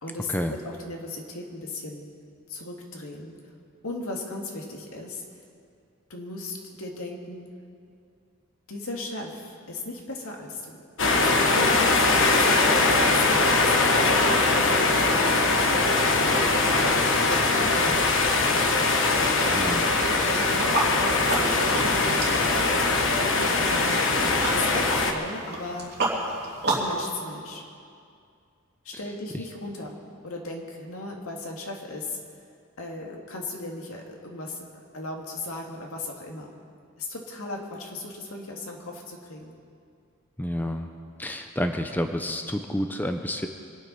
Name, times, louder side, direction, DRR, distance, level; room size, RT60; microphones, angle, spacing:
voice 1, 0.0-2.1 2.5-3.3 3.8-5.2 6.1-7.5 8.7-10.8 11.1-13.7 14.8-16.3 17.2-18.1 20.0-22.5 23.0-24.0 24.4-25.9 26.7-27.6 28.8-30.0 30.2-32.2 32.8-34.7 34.9-36.5 37.0-39.5, left 2 dB, 80° left, 0 dB, 2.3 m, -36 dB
sound 1, 11.0-25.1, left 3 dB, 60° left, 1.3 m, -22 dB
voice 2, 19.5-19.9 40.4-40.9 41.2-43.5, left 1 dB, 10° left, 5 dB, 0.6 m, -29 dB
sound 2, 20.5-27.0, right 2 dB, 50° right, 2.9 m, -31 dB
24.5 x 9.4 x 5.5 m, 2.3 s
head